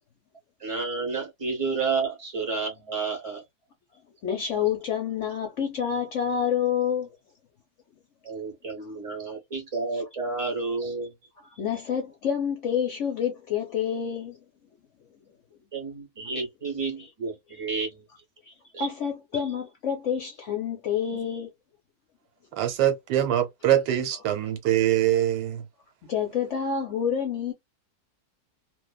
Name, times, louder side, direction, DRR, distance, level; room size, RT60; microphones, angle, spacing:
voice 1, 0.6-3.4 8.2-11.1 15.7-18.0 18.7-18.9, right 4 dB, 35° right, 0.6 m, -31 dB
voice 2, 4.2-7.1 9.9-10.0 11.4-14.4 17.0-17.1 18.5-21.5 26.0-27.5, left 8 dB, 60° left, 0.8 m, -28 dB
voice 3, 22.6-25.6, right 11 dB, 90° right, 1.3 m, -23 dB
2.6 x 2.2 x 2.2 m
omnidirectional pair, 1.7 m